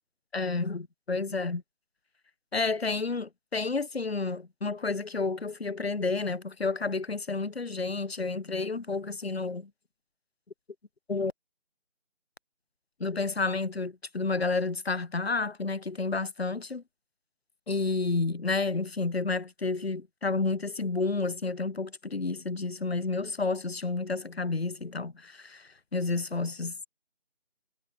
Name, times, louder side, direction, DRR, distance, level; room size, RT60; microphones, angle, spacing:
voice 1, 0.3-1.6 2.5-9.7 11.1-11.3 13.0-16.8 17.7-26.7, left 3 dB, 55° left, 0.7 m, -30 dB
figure-of-eight pair, 165°, 37 cm